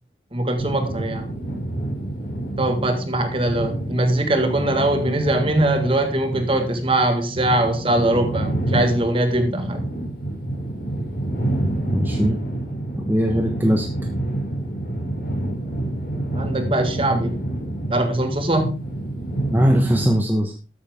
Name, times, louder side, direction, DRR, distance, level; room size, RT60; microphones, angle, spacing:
voice 1, 0.3-1.3 2.6-9.9 16.3-17.4 17.9-18.8, right 1 dB, 30° right, 7 dB, 1.8 m, -21 dB
sound 1, 0.6-20.1, right 1 dB, 55° left, 5.7 m, -28 dB
voice 2, 11.9-12.4 13.0-13.9 19.5-20.5, equal, 10° right, 2 dB, 1.1 m, -20 dB
13.0 x 8.3 x 3.7 m, 0.34 s
head